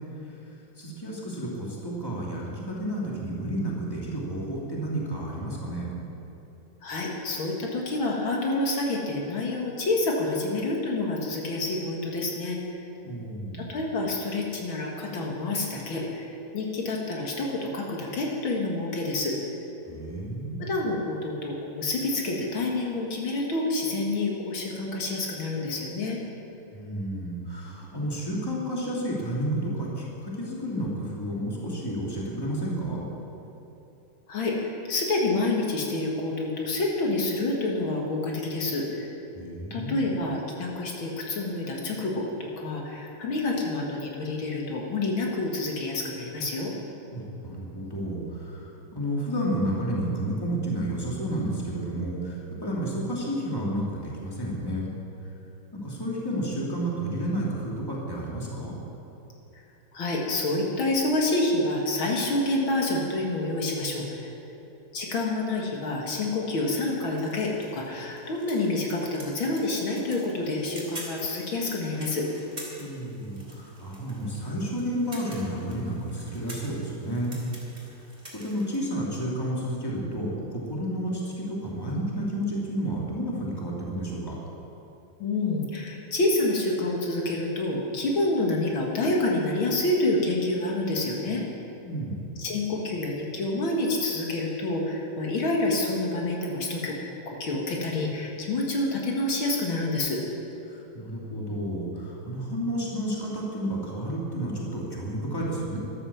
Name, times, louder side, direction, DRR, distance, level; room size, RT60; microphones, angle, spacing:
voice 1, 0.8-5.9 13.0-13.7 19.9-20.7 26.7-33.0 39.3-40.1 47.1-54.9 55.7-58.8 72.8-77.4 78.3-84.4 91.8-92.2 100.7-105.8, right 1 dB, 10° left, -4 dB, 2.7 m, -31 dB
voice 2, 6.8-12.6 13.5-19.3 20.6-26.2 34.3-34.5 34.9-39.1 39.7-46.7 59.9-64.2 64.9-72.3 85.2-91.4 92.4-96.9 97.3-100.2, left 2 dB, 70° left, -1 dB, 2.5 m, -28 dB
sound 1, 66.5-78.8, right 1 dB, 20° right, 3.1 m, -47 dB
13.5 x 12.5 x 7.0 m, 3.0 s
omnidirectional pair, 2.3 m